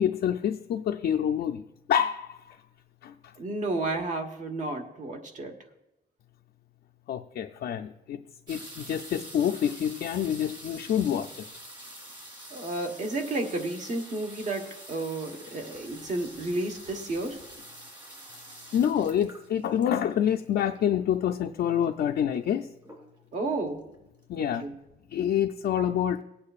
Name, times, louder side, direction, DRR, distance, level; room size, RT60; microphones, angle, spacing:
voice 1, 0.0-1.6 1.9-2.5 3.0-3.1 7.1-8.2 8.5-11.4 18.7-22.7 24.3-24.6 25.1-26.2, left 9 dB, 65° left, 3 dB, 0.4 m, -27 dB
voice 2, 3.4-5.5 12.5-17.4 23.3-23.8 24.3-24.8, right 2 dB, 45° right, 5 dB, 1.2 m, -32 dB
sound 1, 8.5-21.0 21.8-21.9 22.1-22.5 22.8-23.4 23.9-24.0 24.2-24.3, right 1 dB, 25° right, 2.5 m, -46 dB
20.0 x 8.5 x 2.4 m, 0.94 s
wide cardioid pair, 180°, 18 cm